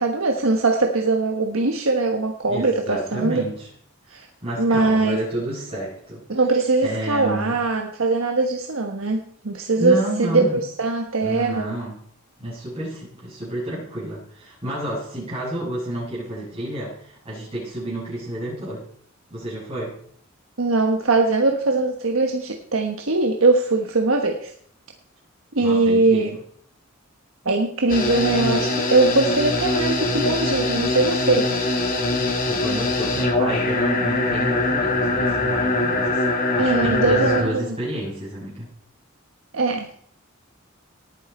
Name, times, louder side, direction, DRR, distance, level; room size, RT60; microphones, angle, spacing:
voice 1, 0.0-3.5 4.1-4.3 4.6-5.2 6.3-11.8 20.6-24.5 25.5-26.3 27.4-31.5 36.6-37.8 39.5-39.9, right 3 dB, 90° right, 3 dB, 1.3 m, -21 dB
voice 2, 2.5-3.7 4.1-6.2 6.8-7.6 9.8-10.6 11.2-12.0 12.4-18.9 19.3-20.0 25.6-26.4 32.4-38.7, right 1 dB, 30° right, -10 dB, 6.7 m, -30 dB
sound 1, 27.9-37.4, left 2 dB, 45° left, 2.7 m, -22 dB
18.5 x 9.5 x 4.3 m, 0.63 s
head